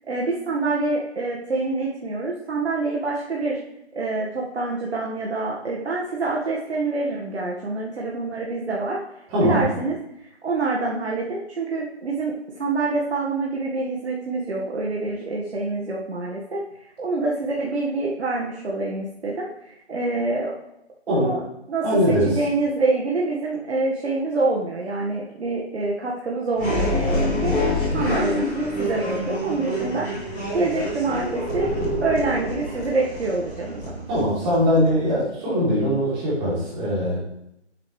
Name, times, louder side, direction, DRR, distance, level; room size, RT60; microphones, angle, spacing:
voice 1, 0.1-3.6 3.9-9.0 9.4-10.0 10.2-16.6 17.0-20.5 21.1-21.4 21.7-27.6 27.9-30.3 30.5-31.7 32.0-34.1, right 3 dB, 70° right, -3 dB, 1.9 m, -26 dB
voice 2, 9.3-9.7 21.1-21.4 21.8-22.4 34.1-37.2, equal, 15° right, -8 dB, 3.4 m, -21 dB
sound 1, 26.5-35.2, left 1 dB, 5° left, 0.6 m, -26 dB
10.0 x 8.0 x 3.4 m, 0.82 s
figure-of-eight pair, 160°, 34 cm